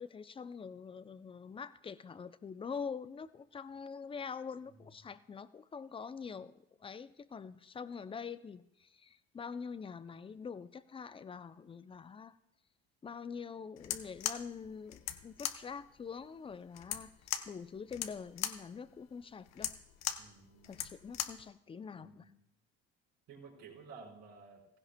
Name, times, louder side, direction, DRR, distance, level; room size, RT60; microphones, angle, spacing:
voice 1, 0.0-12.4 13.0-17.1 17.5-19.7 20.7-22.3, left 6 dB, 15° left, 14 dB, 0.5 m, -45 dB
sound 1, 13.8-21.5, left 11 dB, 60° left, 0.8 m, -40 dB
voice 2, 20.2-20.8 21.9-22.4 23.3-24.8, right 4 dB, 65° right, -2 dB, 4.7 m, -54 dB
16.0 x 15.5 x 2.2 m, 0.78 s
supercardioid pair, 85°, 31 cm